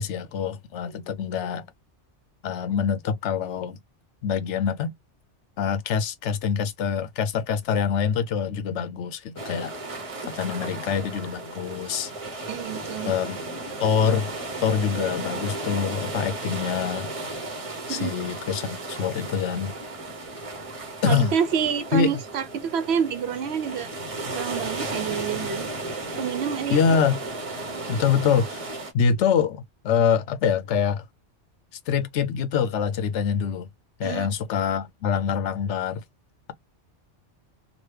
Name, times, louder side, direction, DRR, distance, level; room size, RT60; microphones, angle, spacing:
voice 1, 0.0-1.7 2.4-3.8 4.2-4.9 5.6-9.7 10.3-12.1 13.0-13.4 13.8-14.3 14.6-17.2 17.9-19.7 21.0-21.3 21.9-22.1 26.7-27.2 27.9-28.7 28.9-31.0 31.9-33.7 34.0-36.0, left 7 dB, 75° left, 0.9 m, -25 dB
sound 1, 9.4-28.9, right 2 dB, 35° right, 0.7 m, -34 dB
voice 2, 12.5-13.1 17.9-18.1 21.0-23.9 24.3-25.7 26.2-27.0 27.7-27.8 34.0-34.3, right 8 dB, 70° right, 0.8 m, -28 dB
2.9 x 2.2 x 3.2 m
omnidirectional pair, 1.2 m